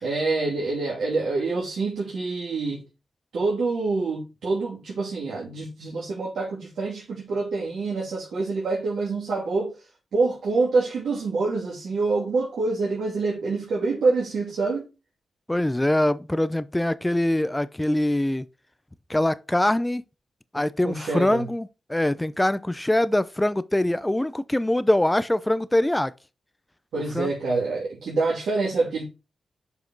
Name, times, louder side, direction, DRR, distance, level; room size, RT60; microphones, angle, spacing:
voice 1, 0.0-2.8 3.3-9.7 10.1-14.8 20.8-21.5 26.9-29.1, right 3 dB, 80° right, 3.0 m, -26 dB
voice 2, 15.5-18.5 19.1-20.0 20.5-26.1 27.1-27.3, left 1 dB, 15° left, 0.7 m, -23 dB
7.8 x 5.1 x 4.0 m
cardioid pair, 50°, 0 cm